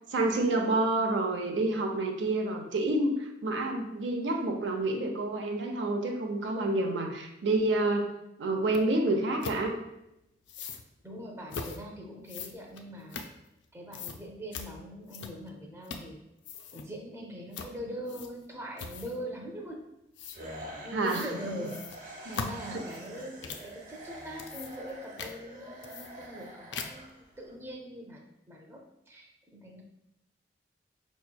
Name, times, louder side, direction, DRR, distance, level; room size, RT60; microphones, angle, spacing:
voice 1, 0.1-8.1 8.4-9.8 20.9-21.3, right 2 dB, 80° right, 3 dB, 0.5 m, -28 dB
sound 1, 8.7-8.8 9.4-9.6 10.5-10.8 11.5-11.8 12.3-13.6 13.9-14.2 14.5-14.7 15.1-15.5 15.8-16.1 16.4-16.9 17.5-17.7 18.1-18.4 18.8-19.2 20.2-20.4 21.0-21.3 21.6-23.7 24.2-24.9 25.2-25.3 25.8-26.4 26.7-27.1, left 5 dB, 75° left, 0.4 m, -40 dB
voice 2, 11.0-13.3 13.7-16.2 16.7-19.8 20.4-20.6 20.8-28.8 29.1-29.8, equal, 15° right, 0 dB, 0.5 m, -42 dB
sound 2, 20.3-27.5, right 1 dB, 45° right, 0.8 m, -46 dB
5.1 x 3.0 x 2.2 m, 0.88 s
head